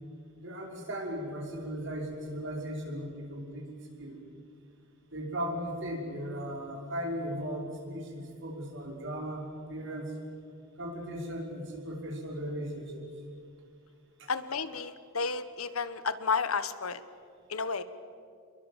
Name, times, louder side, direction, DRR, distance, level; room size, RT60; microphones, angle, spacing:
voice 1, 0.4-4.2 5.1-10.1 10.8-13.0 14.2-14.3, equal, 60° right, 0 dB, 5.5 m, -37 dB
voice 2, 14.3-17.0 17.5-17.8, left 5 dB, 90° left, 13 dB, 1.3 m, -32 dB
28.5 x 22.5 x 7.5 m, 2.4 s
head